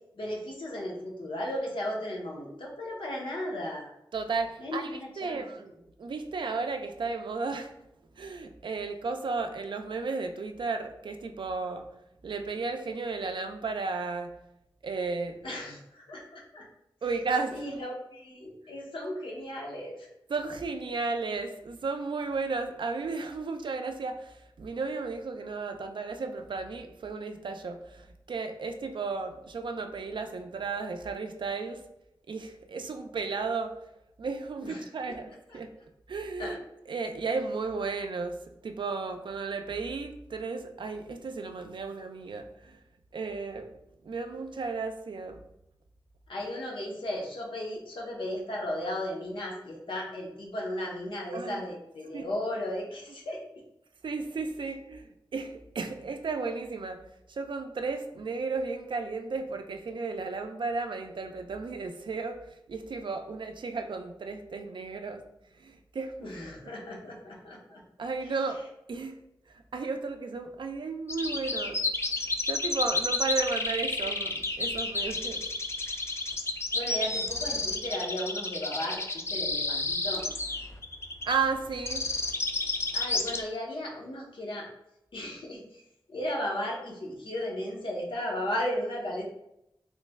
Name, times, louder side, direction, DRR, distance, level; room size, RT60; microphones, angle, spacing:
voice 1, 0.1-3.9 4.6-5.4 15.4-16.7 17.5-20.1 34.6-34.9 35.5-35.6 36.4-36.6 46.3-53.4 66.2-67.8 68.2-68.3 76.7-79.0 79.3-80.3 82.9-84.7 85.1-85.8 86.1-89.2, left 1 dB, 90° left, -2 dB, 0.7 m, -35 dB
voice 2, 4.1-5.7 6.0-7.7 8.2-11.9 12.2-14.3 14.8-15.4 17.0-17.6 20.3-31.8 32.3-33.8 34.2-35.7 36.1-36.6 36.9-38.4 38.6-42.8 43.1-43.7 44.0-45.4 51.3-51.6 52.1-52.3 54.0-57.0 57.3-65.2 65.6-66.1 68.0-68.6 68.9-69.2 69.5-71.8 72.4-75.5 81.3-82.1, right 4 dB, 70° right, 6 dB, 0.3 m, -34 dB
sound 1, 71.1-83.4, left 3 dB, 30° left, 0.3 m, -31 dB
3.1 x 2.1 x 3.3 m, 0.83 s
wide cardioid pair, 80°, 8 cm